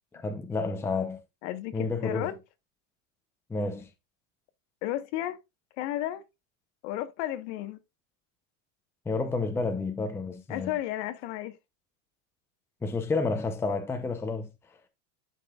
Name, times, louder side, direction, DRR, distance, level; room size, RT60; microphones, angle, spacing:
voice 1, 0.1-1.2 1.7-2.3 3.5-3.9 9.1-10.7 12.8-14.5, left 3 dB, 5° left, 0.7 m, -30 dB
voice 2, 1.4-2.4 4.8-5.4 5.8-6.2 6.8-7.8 10.5-11.6, left 13 dB, 60° left, 1.2 m, -33 dB
11.5 x 5.4 x 2.4 m
supercardioid pair, 155°, 39 cm